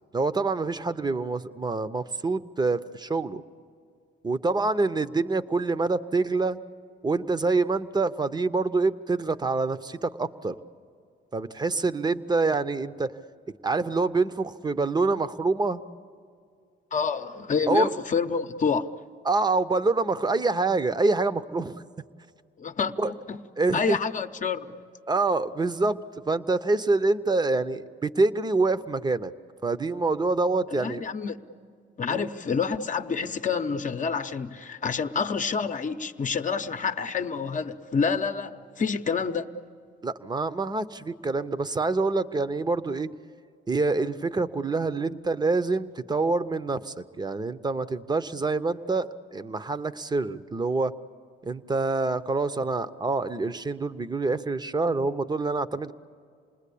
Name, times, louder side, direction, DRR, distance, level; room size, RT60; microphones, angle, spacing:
voice 1, 0.1-3.4 4.2-6.6 7.0-10.5 11.3-13.1 13.6-15.8 17.7-17.9 19.2-21.8 23.0-23.1 23.6-24.0 25.1-29.3 29.6-31.0 32.1-32.3 40.0-43.1 43.7-50.9 51.4-55.9, right 3 dB, 20° right, 0.8 m, -26 dB
voice 2, 16.9-18.9 22.6-23.4 23.7-24.7 30.7-31.4 32.0-39.5, left 5 dB, 40° left, 0.9 m, -28 dB
28.0 x 20.0 x 8.5 m
cardioid pair, 90°, 20 cm